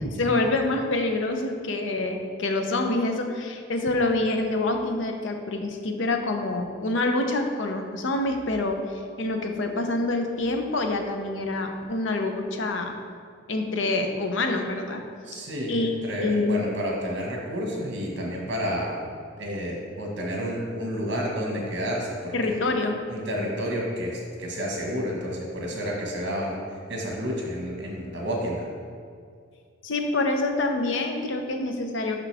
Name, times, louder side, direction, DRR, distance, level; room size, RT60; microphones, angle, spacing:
voice 1, 0.0-8.8 9.2-12.9 13.5-15.0 15.3-15.4 15.7-15.9 16.2-16.6 22.3-23.0 29.8-32.2, left 2 dB, 70° left, 4 dB, 0.7 m, -26 dB
voice 2, 15.2-19.0 19.4-22.6 23.1-28.6, equal, 60° right, -2 dB, 1.4 m, -30 dB
5.9 x 5.9 x 3.4 m, 2.2 s
head